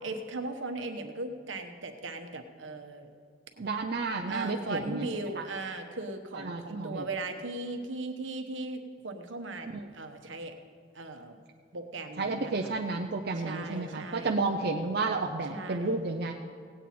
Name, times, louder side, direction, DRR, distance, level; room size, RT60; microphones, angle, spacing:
voice 1, 0.0-3.1 4.3-10.5 10.9-11.4 11.7-12.7 13.4-14.3 15.5-16.0, right 2 dB, 75° right, 6 dB, 1.1 m, -38 dB
voice 2, 3.6-5.1 5.4-5.5 6.3-7.0 9.7-9.9 12.2-16.3, right 3 dB, 50° right, 1 dB, 0.6 m, -31 dB
17.5 x 8.9 x 4.3 m, 2.1 s
head